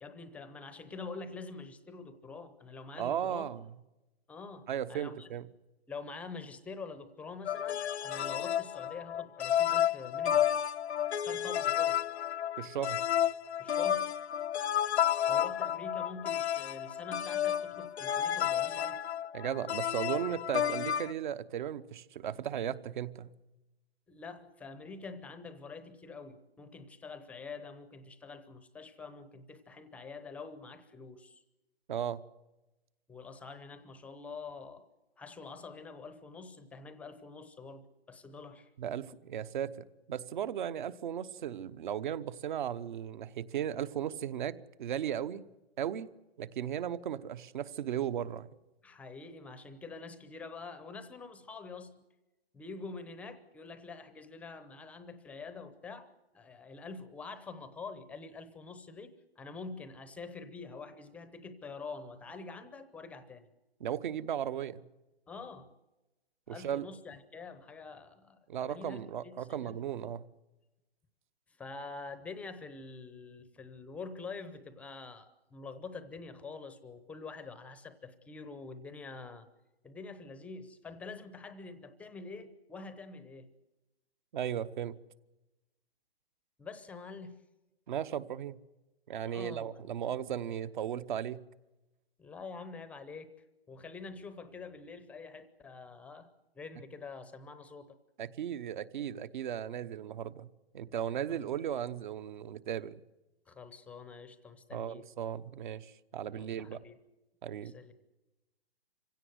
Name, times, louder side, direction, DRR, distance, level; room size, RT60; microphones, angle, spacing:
voice 1, 0.0-3.5 4.3-5.3 5.9-10.5 11.1-12.0 13.6-14.1 15.3-19.0 24.1-31.4 33.1-34.9 35.2-38.7 48.8-52.0 52.5-63.5 65.3-65.7 66.5-70.1 71.6-79.5 79.8-83.5 86.6-87.4 89.3-89.8 92.2-93.3 93.7-96.3 96.5-98.0 101.3-101.4 103.5-105.0 106.3-107.0 107.6-107.9, left 4 dB, 5° left, 0.7 m, -46 dB
voice 2, 3.0-3.6 4.7-5.5 12.6-13.0 19.3-23.3 31.9-32.2 38.8-39.7 40.1-45.5 45.8-46.1 46.4-48.5 63.8-64.8 66.5-66.9 68.5-70.3 84.3-84.9 87.9-88.6 89.1-91.4 98.2-100.5 100.7-103.0 104.7-106.8 107.4-107.7, right 9 dB, 50° right, 1.0 m, -36 dB
sound 1, 7.5-21.1, left 10 dB, 85° left, 0.8 m, -31 dB
25.5 x 16.5 x 8.0 m
hypercardioid pair, 150°, 32 cm